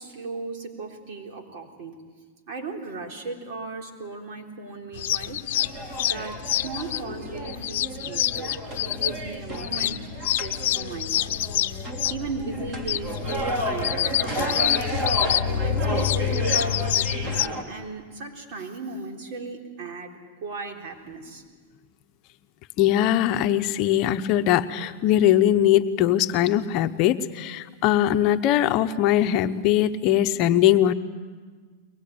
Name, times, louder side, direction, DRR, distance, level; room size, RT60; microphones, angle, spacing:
voice 1, 0.0-1.9 2.5-5.4 6.0-8.6 8.8-10.0 10.3-11.4 12.1-14.8 15.2-21.4, right 4 dB, 55° right, 1 dB, 3.8 m, -37 dB
sound 1, 4.9-17.5, left 13 dB, 70° left, 0.7 m, -27 dB
sound 2, 5.5-17.6, right 1 dB, 30° right, 3.1 m, -32 dB
voice 2, 22.8-30.9, left 12 dB, 45° left, 8 dB, 0.9 m, -21 dB
23.0 x 20.0 x 8.7 m, 1.5 s
supercardioid pair, 135°, 0 cm